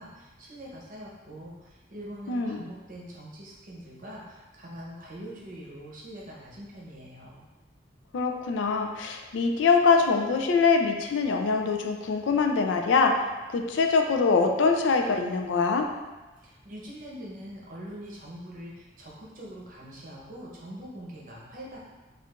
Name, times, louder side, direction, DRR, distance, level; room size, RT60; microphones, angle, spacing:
voice 1, 0.0-7.4 16.4-21.8, equal, 45° right, -4 dB, 0.7 m, -43 dB
voice 2, 2.3-2.6 8.1-13.1 13.5-15.8, left 4 dB, 85° left, 4 dB, 0.4 m, -23 dB
4.4 x 2.4 x 2.4 m, 1.2 s
head